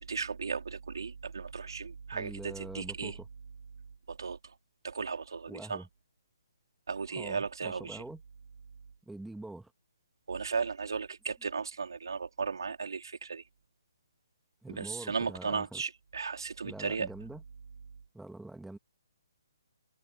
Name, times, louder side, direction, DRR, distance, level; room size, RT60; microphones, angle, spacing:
voice 1, 0.0-3.2 4.1-4.6 4.8-5.8 6.9-8.0 10.3-13.4 14.7-17.1, right 5 dB, 80° right, 3.7 m, -36 dB
voice 2, 2.1-3.2 5.5-5.9 7.1-8.2 9.1-9.7 14.6-15.8 16.6-17.4 18.1-18.8, right 2 dB, ahead, 1.6 m, -44 dB
hypercardioid pair, 165°, 2 cm